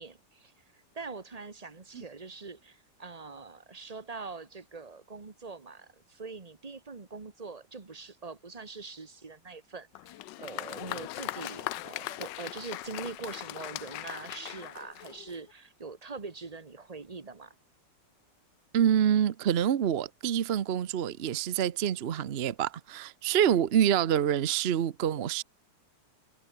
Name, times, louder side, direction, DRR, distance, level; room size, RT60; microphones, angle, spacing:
voice 1, 0.0-17.5, right 4 dB, 20° right, 1.4 m, -43 dB
Applause, 10.0-15.5, left 16 dB, 80° left, 1.2 m, -39 dB
voice 2, 18.7-25.4, right 9 dB, 55° right, 0.7 m, -26 dB
omnidirectional pair, 2.0 m